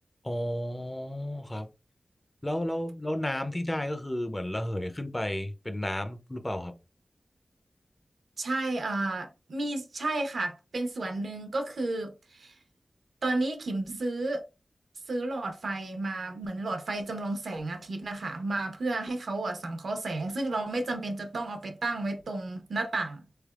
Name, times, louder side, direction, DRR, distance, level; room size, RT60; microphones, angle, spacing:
voice 1, 0.2-1.7 2.4-6.7, left 1 dB, 20° left, 0.5 m, -32 dB
voice 2, 8.4-12.5 13.2-14.4 15.1-23.2, right 2 dB, 90° right, 0.7 m, -32 dB
3.6 x 3.3 x 2.3 m
wide cardioid pair, 90°, 0 cm